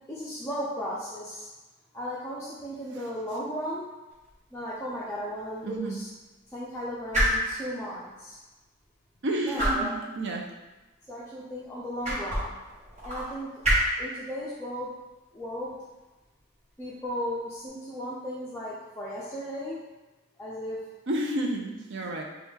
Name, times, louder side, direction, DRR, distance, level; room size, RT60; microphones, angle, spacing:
voice 1, 0.1-1.5 1.9-3.8 4.5-6.1 6.5-8.4 9.4-10.0 11.0-12.5 13.0-13.5 14.0-14.9 15.3-15.8 16.8-19.8 20.4-20.8, equal, 10° left, -8 dB, 0.5 m, -35 dB
sound 1, 4.1-17.7, equal, 35° right, 1.2 m, -33 dB
voice 2, 5.6-6.0 9.2-10.5 21.1-22.2, right 1 dB, 55° right, 1 dB, 0.6 m, -30 dB
4.2 x 2.3 x 3.6 m, 1.2 s
head